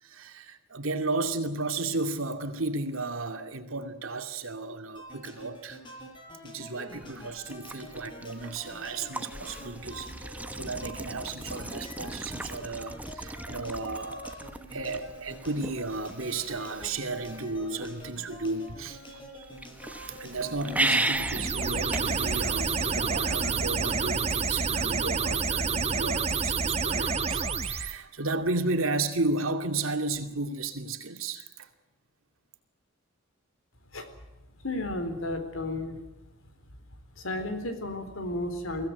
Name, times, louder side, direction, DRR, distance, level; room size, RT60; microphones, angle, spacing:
voice 1, 0.0-5.8 6.4-19.5 20.1-31.7, right 3 dB, 80° right, 2.4 m, -33 dB
sound 1, 4.9-24.1, left 1 dB, 25° left, 5.5 m, -47 dB
sound 2, 6.9-23.6, right 2 dB, 5° right, 1.1 m, -37 dB
sound 3, 21.1-27.9, right 5 dB, 30° right, 1.2 m, -28 dB
voice 2, 34.6-36.0 37.1-38.9, left 1 dB, 75° left, 4.1 m, -33 dB
23.5 x 16.5 x 9.4 m
head